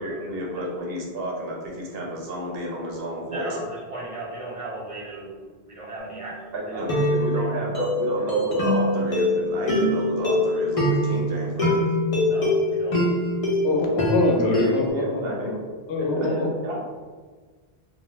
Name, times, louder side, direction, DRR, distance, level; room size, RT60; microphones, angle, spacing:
voice 1, 0.0-3.6 6.5-11.9 14.6-15.5 16.0-16.8, equal, 65° right, -2 dB, 0.9 m, -31 dB
voice 2, 3.3-7.0 7.3-7.6 8.2-8.3 12.2-13.0, right 2 dB, 45° right, -7 dB, 0.5 m, -37 dB
sound 1, 6.0-6.3 6.9-14.9, left 1 dB, 40° left, 0.6 m, -24 dB
voice 3, 13.6-15.6 15.9-16.5, left 2 dB, 80° left, 0 dB, 0.9 m, -24 dB
2.4 x 2.2 x 3.1 m, 1.5 s
omnidirectional pair, 1.1 m